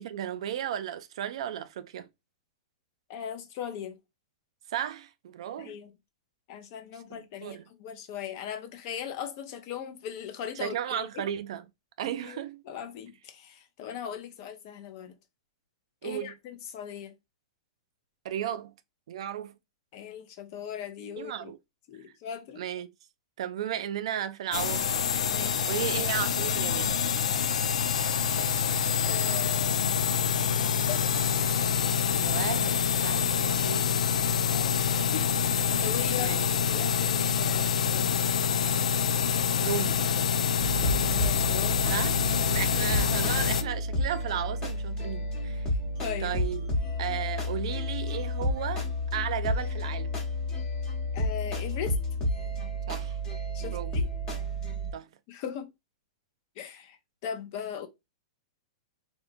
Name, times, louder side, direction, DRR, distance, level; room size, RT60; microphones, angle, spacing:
voice 1, 0.0-2.1 4.7-5.8 7.1-7.6 10.6-11.6 12.0-12.6 16.0-16.3 18.2-18.7 19.1-19.5 21.2-21.6 22.6-22.9 23.4-25.0 25.7-27.0 32.2-33.9 36.2-36.5 39.6-40.0 41.9-45.7 46.2-46.7 47.0-48.9 49.1-50.2 52.9-53.2 53.7-53.9 54.9-55.1, right 10 dB, 60° right, 0.3 m, -34 dB
voice 2, 3.1-4.0 5.6-5.9 6.5-11.2 12.0-15.2 16.0-17.1 19.9-21.5 21.9-22.6 25.3-25.6 29.0-30.0 30.6-31.0 33.0-33.2 34.5-35.2 35.5-38.2 40.8-41.8 45.7-46.3 51.1-52.0 53.5-54.1 55.3-55.7 56.6-57.0 57.2-57.9, left 8 dB, 40° left, 0.5 m, -39 dB
sound 1, 24.5-43.6, left 7 dB, 90° left, 0.3 m, -26 dB
sound 2, 40.6-54.9, left 1 dB, 20° left, 1.0 m, -31 dB
2.9 x 2.1 x 2.5 m
hypercardioid pair, 155°, 3 cm